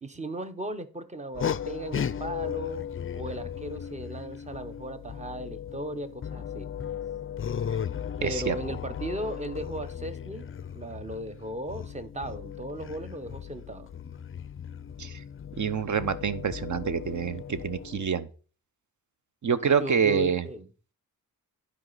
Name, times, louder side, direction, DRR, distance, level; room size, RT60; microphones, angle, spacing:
voice 1, 0.0-2.8 3.1-6.7 8.2-13.9 19.7-20.7, right 1 dB, 20° right, 10 dB, 0.8 m, -37 dB
sound 1, 1.3-18.1, left 8 dB, 40° left, 0.4 m, -36 dB
voice 2, 8.2-8.6 15.0-15.2 15.6-18.3 19.4-20.5, right 6 dB, 55° right, 13 dB, 0.8 m, -27 dB
11.0 x 4.9 x 4.0 m, 0.38 s
wide cardioid pair, 160°, 35 cm